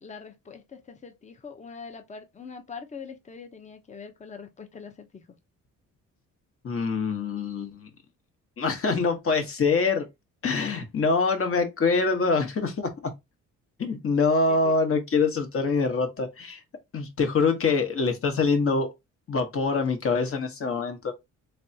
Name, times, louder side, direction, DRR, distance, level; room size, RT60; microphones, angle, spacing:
voice 1, 0.0-5.3 14.5-14.7, left 5 dB, 25° left, 0.7 m, -43 dB
voice 2, 6.6-7.9 8.6-10.1 10.4-13.1 13.8-16.6 16.9-18.9 19.3-21.1, left 4 dB, 45° left, 1.1 m, -25 dB
3.4 x 3.3 x 2.7 m
cardioid pair, 90°, 30 cm